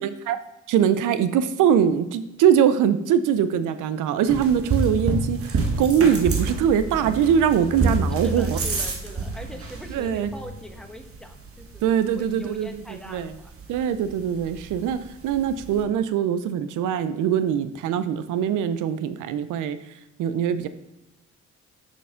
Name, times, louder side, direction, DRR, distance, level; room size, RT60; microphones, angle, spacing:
voice 1, 0.0-0.4 0.7-8.6 9.9-10.3 11.8-13.3 13.7-19.8 20.2-20.7, right 8 dB, 85° right, 12 dB, 0.7 m, -22 dB
sound 1, 4.3-15.8, right 3 dB, 50° right, 1.5 m, -29 dB
voice 2, 8.0-13.5, equal, ahead, 4 dB, 1.3 m, -42 dB
6.6 x 6.0 x 5.7 m, 0.99 s
cardioid pair, 90°, 30 cm